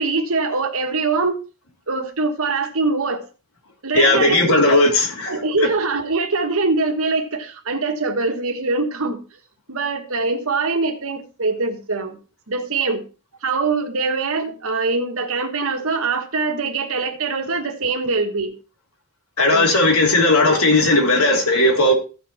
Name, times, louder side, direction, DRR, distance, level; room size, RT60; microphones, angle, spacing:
voice 1, 0.0-1.4 1.9-3.2 3.8-4.8 5.3-9.2 9.7-12.2 12.5-13.0 13.4-18.6 19.5-19.8, right 3 dB, 65° right, 1.5 m, -23 dB
voice 2, 3.9-5.7 19.4-21.9, left 2 dB, 80° left, 3.1 m, -16 dB
15.0 x 5.1 x 4.3 m
head